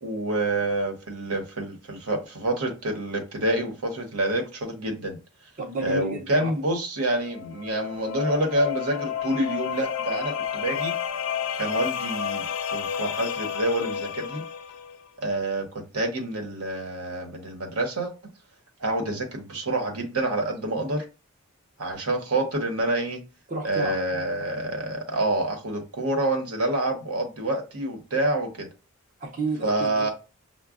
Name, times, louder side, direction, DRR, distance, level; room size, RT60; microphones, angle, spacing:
voice 1, 0.0-5.2 5.8-11.0 11.6-14.4 15.2-18.1 18.8-21.0 21.8-23.2 23.6-28.7 29.6-30.1, right 1 dB, 80° right, 1.0 m, -27 dB
voice 2, 5.6-6.5 23.5-24.0 29.2-30.1, right 3 dB, 35° right, 0.6 m, -31 dB
sound 1, 7.2-15.0, left 8 dB, 70° left, 0.4 m, -31 dB
5.9 x 2.2 x 2.4 m
head